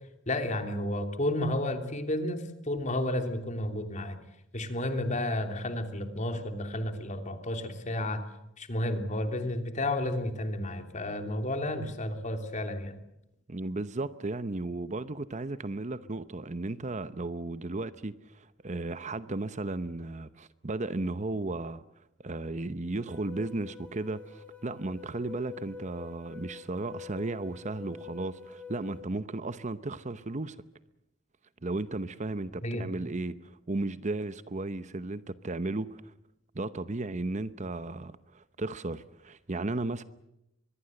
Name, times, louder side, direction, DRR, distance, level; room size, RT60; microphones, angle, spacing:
voice 1, 0.3-4.2 4.5-8.2 8.6-13.0 32.6-32.8, left 1 dB, 40° left, 3.0 m, -32 dB
voice 2, 13.5-21.8 22.2-30.6 31.6-36.1 36.5-40.0, right 2 dB, 40° right, 0.8 m, -35 dB
sound 1, 23.0-29.0, left 6 dB, 5° left, 6.5 m, -47 dB
24.5 x 22.0 x 7.8 m
head